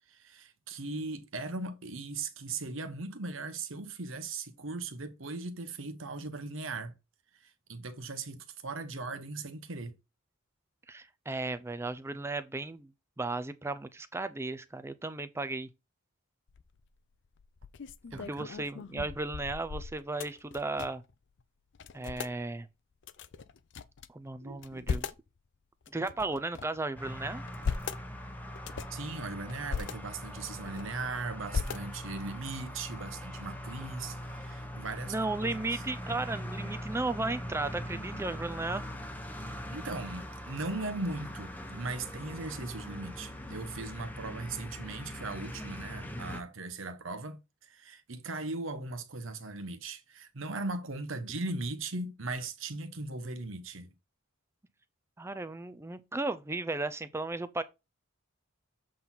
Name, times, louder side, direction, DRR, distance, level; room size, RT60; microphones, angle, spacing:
voice 1, 0.1-6.9 7.4-9.9 18.1-18.5 24.4-24.8 28.9-35.1 35.4-35.8 39.7-53.9, right 3 dB, 65° right, 1.0 m, -39 dB
voice 2, 10.9-12.9 13.2-15.7 18.1-21.0 21.9-22.7 24.1-25.1 25.9-27.4 35.1-38.8 55.2-57.6, right 2 dB, 10° right, 0.4 m, -35 dB
sound 1, 16.5-16.9 17.4-21.1 21.4-21.5 21.8-22.3 23.0-24.1 24.5-25.3 25.9-26.8 27.3-28.0 28.6-29.0 29.5-29.9 30.4-31.1 31.5-32.2, left 5 dB, 55° left, 0.5 m, -38 dB
sound 2, 27.0-46.4, equal, 10° left, 0.8 m, -41 dB
7.6 x 4.0 x 4.3 m
head